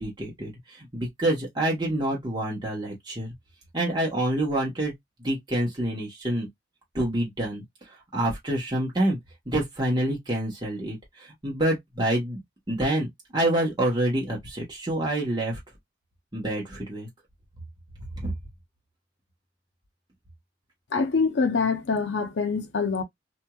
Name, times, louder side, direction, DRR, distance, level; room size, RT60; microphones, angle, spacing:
voice 1, 0.0-3.3 3.7-4.9 5.2-6.5 6.9-9.2 9.5-12.4 12.7-13.1 13.3-15.6 16.3-17.1 18.2-18.3, right 1 dB, 25° right, 1.1 m, -27 dB
voice 2, 20.9-23.0, left 4 dB, 90° left, 0.6 m, -25 dB
2.9 x 2.6 x 2.2 m
head